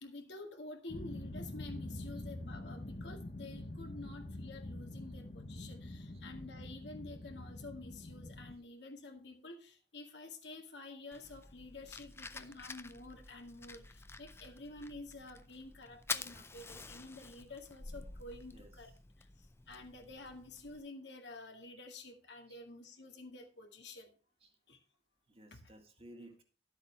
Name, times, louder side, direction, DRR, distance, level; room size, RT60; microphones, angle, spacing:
voice 1, 0.0-18.9 19.2-24.1 24.7-24.8 25.5-25.6, left 2 dB, 70° left, 3 dB, 2.0 m, -50 dB
sound 1, 0.9-8.6, left 1 dB, 45° left, 0.9 m, -45 dB
Fire, 11.1-20.8, left 4 dB, 15° left, 0.5 m, -48 dB
voice 2, 18.5-19.0 22.5-22.6 24.4-24.5 25.3-26.4, right 1 dB, 35° right, 3 dB, 1.9 m, -57 dB
12.0 x 8.3 x 3.4 m, 0.36 s
head